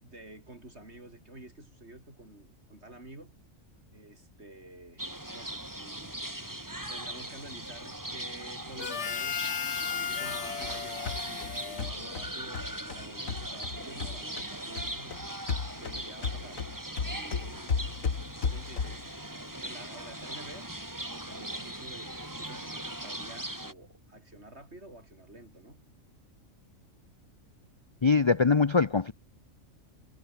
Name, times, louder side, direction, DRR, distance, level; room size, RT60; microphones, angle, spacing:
voice 1, 0.0-3.4 3.9-6.5 6.8-9.4 9.8-15.4 15.7-16.6 17.0-17.8 18.5-19.1 19.6-20.7 21.0-25.8, right 1 dB, 55° right, 6.9 m, -50 dB
sound 1, 5.0-23.7, right 1 dB, 15° right, 3.0 m, -40 dB
Harmonica, 8.8-12.6, left 7 dB, 60° left, 1.3 m, -36 dB
sound 2, 10.2-14.5 14.8-19.1, left 5 dB, 85° left, 2.3 m, -35 dB
voice 2, 28.0-29.1, left 4 dB, 35° left, 0.5 m, -23 dB
omnidirectional pair, 1.4 m